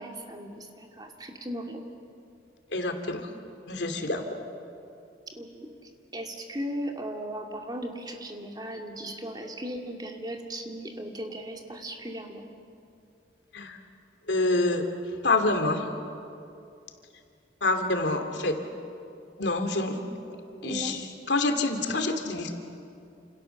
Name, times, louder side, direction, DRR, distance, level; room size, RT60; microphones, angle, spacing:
voice 1, 0.0-1.8 5.4-12.4 20.6-21.0, right 1 dB, 20° right, 3 dB, 2.4 m, -37 dB
voice 2, 2.7-3.3 3.7-4.2 13.5-13.8 14.3-14.8 15.2-15.8 17.6-18.6 19.4-20.0 20.3-20.4 20.6-21.0 21.3-22.5, left 2 dB, 80° left, 6 dB, 2.7 m, -26 dB
29.0 x 28.0 x 7.1 m, 2.6 s
head